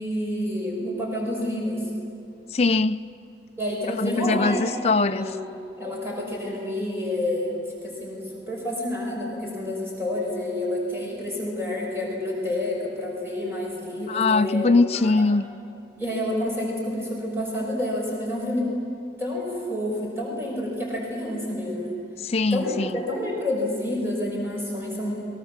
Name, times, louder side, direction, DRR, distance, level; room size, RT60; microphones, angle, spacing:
voice 1, 0.0-1.9 3.6-5.4 5.8-15.1 16.0-18.7 19.2-21.9 22.5-25.3, left 1 dB, 15° right, 6.0 m, -29 dB
voice 2, 2.5-3.0 4.0-5.4 14.1-15.5 22.2-23.0, left 3 dB, 35° left, 0.5 m, -22 dB
28.5 x 23.0 x 7.3 m
head